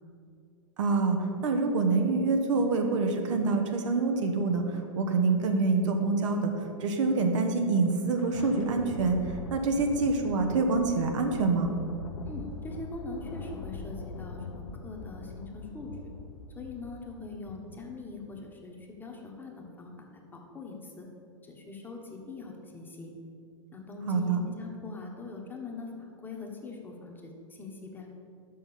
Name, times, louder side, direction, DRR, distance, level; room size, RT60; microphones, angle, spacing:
voice 1, 0.8-1.2 1.4-4.6 4.9-6.5 6.8-9.2 9.5-11.7 24.1-24.4, right 3 dB, 65° right, 4 dB, 1.1 m, -26 dB
Thunder, 7.8-18.5, left 3 dB, 80° left, 0.7 m, -42 dB
voice 2, 12.2-16.1 16.5-21.1 21.4-23.1 23.7-28.1, left 3 dB, 10° left, 0 dB, 1.2 m, -42 dB
6.3 x 6.0 x 7.1 m, 2.5 s
hypercardioid pair, 120°, 17 cm